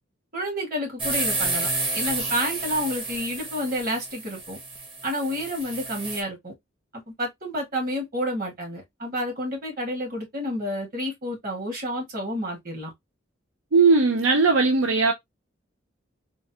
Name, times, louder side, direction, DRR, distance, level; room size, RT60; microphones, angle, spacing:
voice 1, 0.3-1.7 1.9-4.6 5.0-6.5 6.9-12.9, equal, 45° right, 1.7 m, -30 dB
sound 1, 1.0-6.2, right 2 dB, 25° right, 0.9 m, -30 dB
voice 2, 13.7-15.1, right 4 dB, 85° right, 0.6 m, -18 dB
3.8 x 2.2 x 2.7 m
head